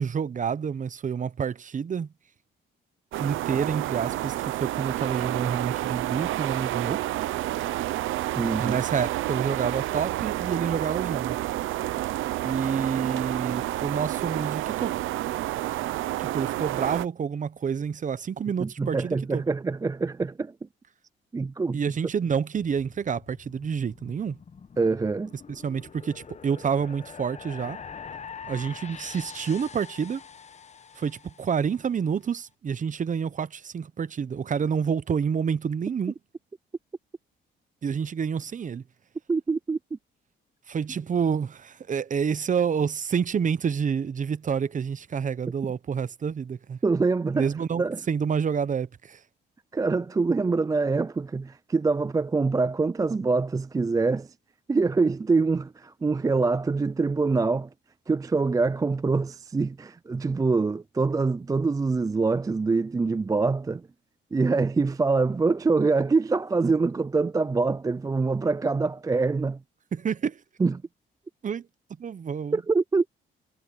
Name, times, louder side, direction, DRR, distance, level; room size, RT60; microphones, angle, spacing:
voice 1, 0.0-2.1 3.2-7.0 8.6-11.4 12.4-14.9 16.2-19.4 21.7-24.4 25.5-27.8 28.5-30.2 31.0-36.1 37.8-38.8 40.7-46.8 47.3-49.2 69.9-70.4 71.4-71.6 72.0-72.6, right 7 dB, 40° right, 0.9 m, -28 dB
sound 1, 3.1-17.1, right 15 dB, 85° right, 0.8 m, -29 dB
voice 2, 8.4-8.8 18.6-20.5 21.3-22.0 24.8-25.3 39.3-39.8 46.8-47.5 47.8-48.0 49.7-54.3 54.7-57.7 58.1-63.9 64.3-69.6 70.6-70.8 72.5-73.1, right 4 dB, 15° right, 0.4 m, -25 dB
sound 2, 22.6-31.9, left 6 dB, 35° left, 1.1 m, -45 dB
cardioid pair, 90°, 20 cm